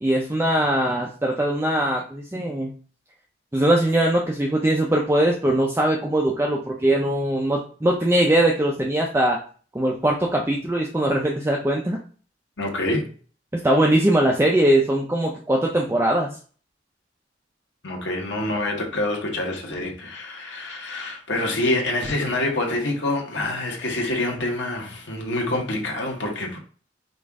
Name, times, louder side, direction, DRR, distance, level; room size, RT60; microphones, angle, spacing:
voice 1, 0.0-2.7 3.5-9.4 9.7-12.0 13.6-16.3, right 1 dB, 15° right, 0.4 m, -21 dB
voice 2, 12.6-13.1 17.8-26.6, left 2 dB, 75° left, 1.1 m, -26 dB
5.2 x 2.4 x 3.5 m
head